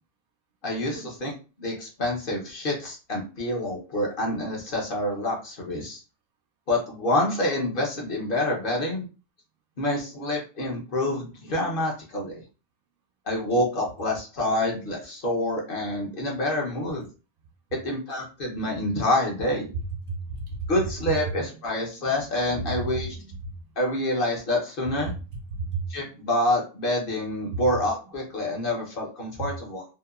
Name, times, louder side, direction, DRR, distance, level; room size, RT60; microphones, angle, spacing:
voice 1, 0.6-1.3 1.6-6.0 6.7-9.1 9.8-12.4 13.3-17.1 17.8-19.7 20.7-23.1 23.8-25.1 25.9-29.8, left 1 dB, 55° left, -1 dB, 1.0 m, -27 dB
voice 2, 20.1-20.7 22.4-23.5 25.1-25.2 25.5-25.8 27.5-27.6, right 3 dB, 65° right, 2 dB, 0.7 m, -33 dB
2.8 x 2.2 x 2.3 m, 0.32 s
omnidirectional pair, 1.1 m